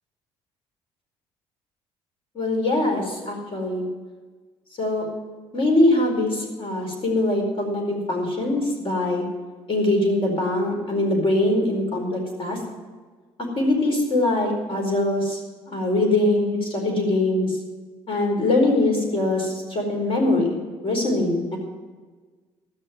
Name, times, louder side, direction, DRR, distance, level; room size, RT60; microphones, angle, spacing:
voice 1, 2.3-3.9 4.8-5.1 5.5-9.2 9.7-12.6 13.6-15.4 15.7-17.6 18.1-20.5 20.8-21.6, left 2 dB, 45° left, 1 dB, 4.5 m, -22 dB
14.0 x 6.6 x 9.2 m, 1.4 s
supercardioid pair, 65°, 12 cm